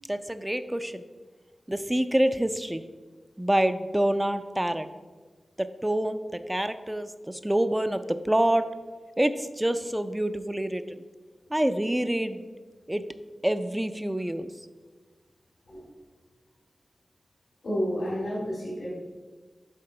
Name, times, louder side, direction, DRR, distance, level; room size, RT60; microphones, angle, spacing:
voice 1, 0.1-1.0 1.7-2.8 3.4-4.9 5.6-8.7 9.2-11.0 11.5-12.4 12.9-13.0 13.4-14.5, right 1 dB, 10° right, 10 dB, 0.4 m, -27 dB
voice 2, 17.6-18.9, equal, 75° left, -7 dB, 2.1 m, -30 dB
7.8 x 3.6 x 5.4 m, 1.4 s
wide cardioid pair, 80°, 0 cm